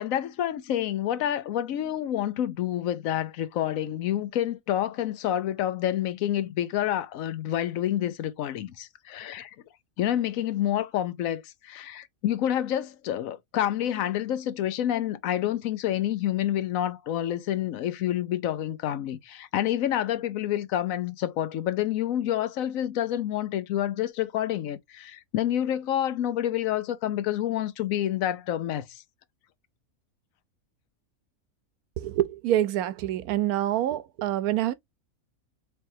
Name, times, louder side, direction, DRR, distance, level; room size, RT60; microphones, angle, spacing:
voice 1, 0.0-9.5 10.0-29.0, left 11 dB, 70° left, 1.0 m, -28 dB
voice 2, 32.0-34.7, right 13 dB, 90° right, 1.1 m, -26 dB
4.3 x 3.4 x 2.6 m
omnidirectional pair, 1.5 m